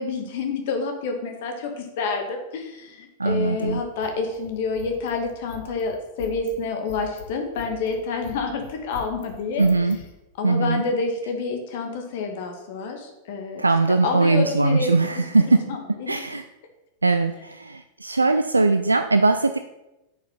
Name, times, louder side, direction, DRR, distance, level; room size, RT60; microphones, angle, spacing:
voice 1, 0.0-9.7 10.4-13.6 14.0-14.9 15.4-16.2, left 4 dB, 55° left, 4 dB, 2.0 m, -28 dB
scissors scraping, 3.2-10.1, left 4 dB, 70° left, 1.2 m, -42 dB
voice 2, 3.2-3.8 9.6-10.0 10.4-10.8 13.6-15.8 16.1-16.4 17.0-19.6, right 3 dB, 80° right, 8 dB, 0.5 m, -20 dB
9.6 x 6.8 x 5.8 m, 0.95 s
figure-of-eight pair, 90°, 0 cm